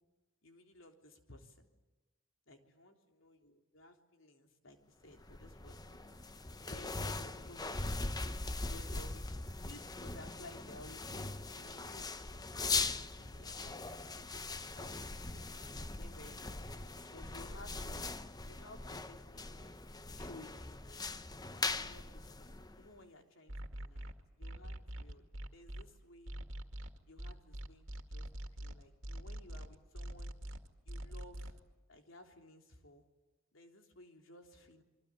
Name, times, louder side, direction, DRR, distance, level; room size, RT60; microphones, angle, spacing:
voice 1, 0.4-1.7 2.5-6.0 6.7-7.8 8.6-12.1 12.8-16.6 17.1-18.1 18.5-19.8 20.1-20.6 20.8-21.0 21.7-26.3 27.1-28.3 28.6-30.3 30.9-31.6 31.9-33.1 33.5-34.8, left 1 dB, 75° left, 3 dB, 3.6 m, -57 dB
sound 1, 5.1-23.0, left 3 dB, 20° left, 0.8 m, -41 dB
sound 2, 23.5-25.8 26.3-31.6, right 1 dB, 70° right, 2.2 m, -43 dB
27.0 x 24.0 x 8.7 m, 1.1 s
head